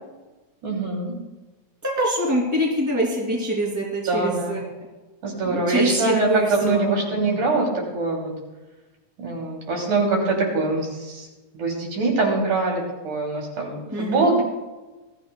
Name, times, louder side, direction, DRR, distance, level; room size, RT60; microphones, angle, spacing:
voice 1, 0.6-1.1 4.1-4.6 5.2-7.7 7.9-8.3 9.2-11.3 11.5-14.4, right 3 dB, 75° right, -1 dB, 4.3 m, -23 dB
voice 2, 1.8-4.6 5.4-6.9 13.9-14.3, right 1 dB, 5° right, -2 dB, 2.1 m, -24 dB
20.5 x 14.0 x 2.3 m, 1.2 s
omnidirectional pair, 3.6 m